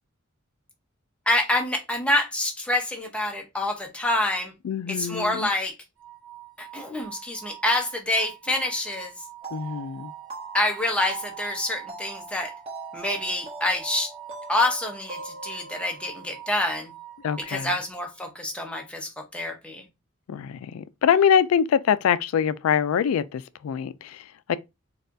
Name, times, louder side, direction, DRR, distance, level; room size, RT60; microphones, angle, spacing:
voice 1, 1.3-4.5 4.9-5.7 6.6-9.1 10.5-12.5 12.9-14.1 14.5-16.9 17.5-19.8, left 1 dB, 5° left, 0.7 m, -27 dB
voice 2, 4.6-5.5 9.5-10.1 17.2-17.7 20.3-24.6, left 8 dB, 70° left, 0.3 m, -24 dB
sound 1, 6.0-18.2, right 13 dB, 65° right, 1.0 m, -45 dB
sound 2, 9.4-16.9, right 3 dB, 30° right, 1.0 m, -42 dB
4.2 x 2.4 x 2.6 m
head